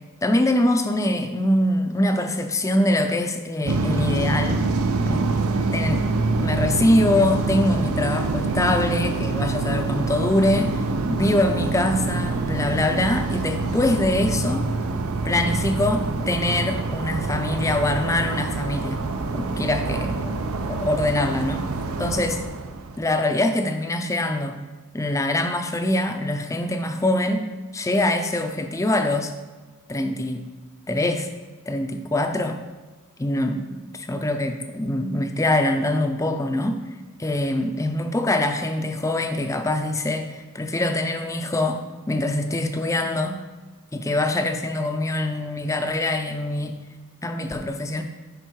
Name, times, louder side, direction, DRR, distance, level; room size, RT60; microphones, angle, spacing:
voice 1, 0.2-4.6 5.0-5.3 5.7-6.0 6.4-14.6 15.2-19.0 19.3-20.4 20.7-21.7 22.0-22.4 23.0-24.6 24.9-29.3 29.9-30.4 30.9-31.3 31.7-32.6 33.2-36.8 37.2-41.8 42.1-43.4 43.9-46.8 47.2-48.0, left 1 dB, 15° left, 6 dB, 0.5 m, -24 dB
sound 1, 3.7-23.1, right 3 dB, 70° right, 0.5 m, -26 dB
10.0 x 3.6 x 4.6 m, 1.3 s
head